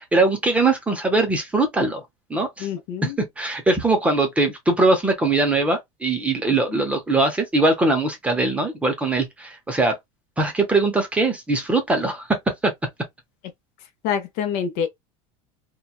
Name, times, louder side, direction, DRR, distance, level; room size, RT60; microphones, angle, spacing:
voice 1, 0.0-2.0 2.3-2.7 3.0-10.0 10.4-12.7, right 2 dB, 10° right, 0.6 m, -21 dB
voice 2, 2.6-3.2 6.7-6.8 14.0-14.9, left 8 dB, 50° left, 0.7 m, -26 dB
2.9 x 2.2 x 2.3 m
cardioid pair, 165°, 16 cm